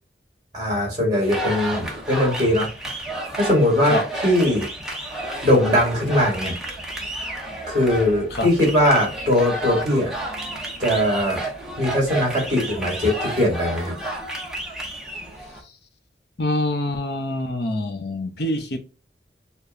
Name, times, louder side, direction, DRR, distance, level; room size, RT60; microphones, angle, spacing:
voice 1, 0.5-2.7 3.4-4.0 4.2-4.7 5.4-6.5 7.7-10.1 10.8-11.4 11.8-14.0, left 1 dB, 25° right, 2.4 m, -20 dB
sound 1, 1.2-15.6, right 1 dB, 5° right, 0.8 m, -31 dB
voice 2, 16.4-18.8, left 1 dB, 70° left, 0.8 m, -25 dB
6.8 x 2.3 x 2.6 m
head